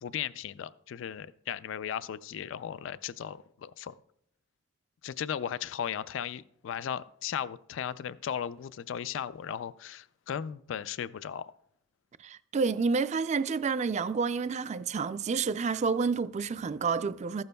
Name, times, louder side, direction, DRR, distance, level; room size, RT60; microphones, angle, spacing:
voice 1, 0.0-3.9 5.0-11.5, left 8 dB, 70° left, 0.3 m, -36 dB
voice 2, 12.2-17.4, right 5 dB, 35° right, 0.3 m, -29 dB
14.5 x 12.0 x 2.2 m
head